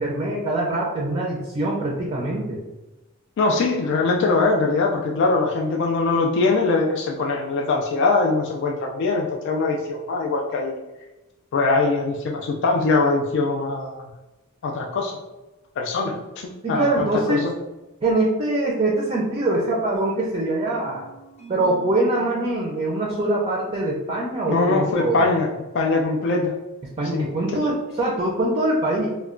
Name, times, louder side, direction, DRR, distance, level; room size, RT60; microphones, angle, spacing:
voice 1, 0.0-2.6 16.6-17.4 18.0-21.1 21.5-25.2 27.0-29.1, right 2 dB, 25° right, -3 dB, 0.4 m, -23 dB
voice 2, 3.4-10.8 11.5-14.0 14.6-15.1 15.8-17.5 24.5-25.5 25.7-26.5 27.1-27.7, left 3 dB, 55° left, 1 dB, 0.3 m, -22 dB
sound 1, 20.0-24.6, right 2 dB, 30° left, 0.7 m, -46 dB
2.2 x 2.2 x 3.6 m, 1.0 s
head